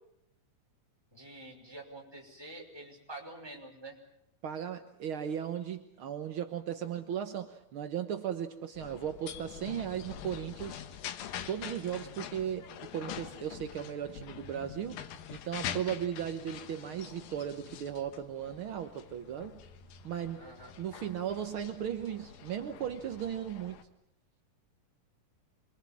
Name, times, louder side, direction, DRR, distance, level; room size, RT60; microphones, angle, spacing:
voice 1, 1.1-4.0 18.9-19.0 20.4-20.8, right 2 dB, 5° right, 0 dB, 5.6 m, -47 dB
voice 2, 4.4-10.8 11.5-15.0 15.3-19.6 20.0-20.4 20.8-23.9, right 9 dB, 70° right, 7 dB, 1.2 m, -36 dB
sound 1, 8.8-23.8, left 9 dB, 80° left, 3.1 m, -45 dB
26.5 x 23.5 x 7.4 m, 0.76 s
omnidirectional pair, 4.1 m